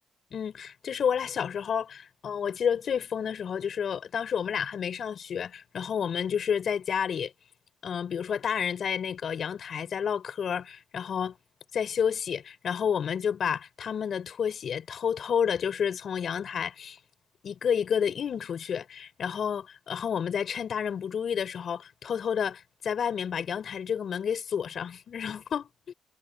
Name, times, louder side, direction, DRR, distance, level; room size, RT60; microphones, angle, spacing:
voice 1, 0.3-7.3 7.8-11.4 11.7-17.0 17.4-25.9, left 7 dB, 60° left, 6.0 m, -30 dB
cardioid pair, 95°, 0 cm